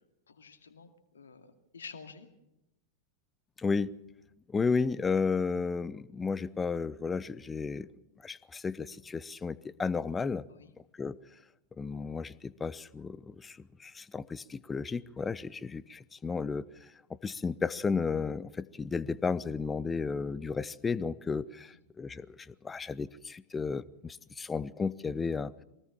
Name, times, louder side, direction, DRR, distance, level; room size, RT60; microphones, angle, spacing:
voice 1, 0.3-2.3 10.5-10.7, left 5 dB, 70° left, 7 dB, 2.4 m, -50 dB
voice 2, 3.6-3.9 4.5-7.9 8.2-10.4 11.0-11.2 11.8-16.7 17.2-25.6, left 5 dB, 15° left, 20 dB, 0.7 m, -33 dB
23.5 x 19.0 x 7.3 m, 0.89 s
figure-of-eight pair, 90°, 0 cm